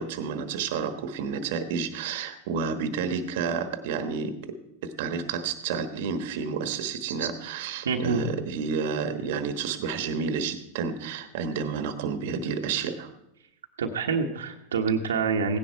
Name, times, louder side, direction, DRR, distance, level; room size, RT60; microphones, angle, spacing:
voice 1, 0.0-13.1, right 5 dB, 65° right, 10 dB, 1.3 m, -30 dB
voice 2, 7.8-8.2 13.8-15.6, right 5 dB, 85° right, 2 dB, 1.2 m, -26 dB
16.5 x 10.5 x 4.5 m, 0.82 s
hypercardioid pair, 105°, 0 cm